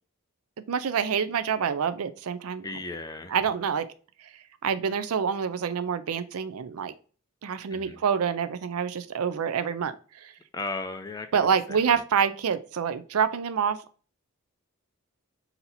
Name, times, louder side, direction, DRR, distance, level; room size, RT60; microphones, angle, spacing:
voice 1, 0.7-2.7 3.3-3.9 4.6-6.9 7.4-9.9 10.2-10.3 11.3-13.8, right 7 dB, 85° right, 12 dB, 0.5 m, -27 dB
voice 2, 2.6-3.3 7.7-8.0 10.5-12.0, left 3 dB, 15° left, 7 dB, 0.4 m, -36 dB
4.0 x 2.9 x 4.0 m, 0.39 s
head